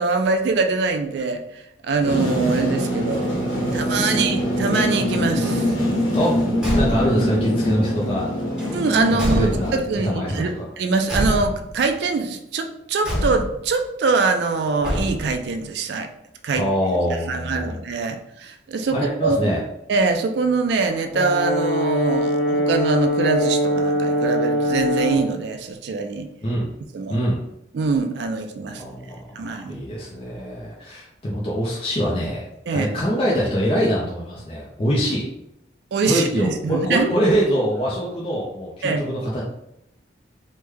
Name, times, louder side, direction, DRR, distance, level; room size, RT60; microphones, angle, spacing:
voice 1, 0.0-3.3 3.7-5.7 8.7-16.1 16.4-16.6 17.1-19.4 19.9-26.3 26.9-27.2 27.7-28.8 29.4-29.8 32.7-32.9 35.9-37.1 38.8-39.0, right 4 dB, 65° right, 6 dB, 0.3 m, -23 dB
sound 1, 2.0-9.8, equal, 85° left, 1.4 m, -23 dB
Car / Truck / Slam, 6.5-7.3 8.5-10.0 11.0-11.8 13.0-13.7 14.8-15.5, equal, 5° right, 0.9 m, -26 dB
voice 2, 6.7-8.3 9.1-9.7 10.0-10.5 16.5-17.7 18.9-19.6 26.4-26.7 27.1-27.4 28.6-32.4 32.7-35.2 36.0-39.4, equal, 30° left, -5 dB, 0.4 m, -24 dB
Brass instrument, 21.1-25.3, equal, 65° left, 0.6 m, -22 dB
3.1 x 2.1 x 3.4 m, 0.81 s
head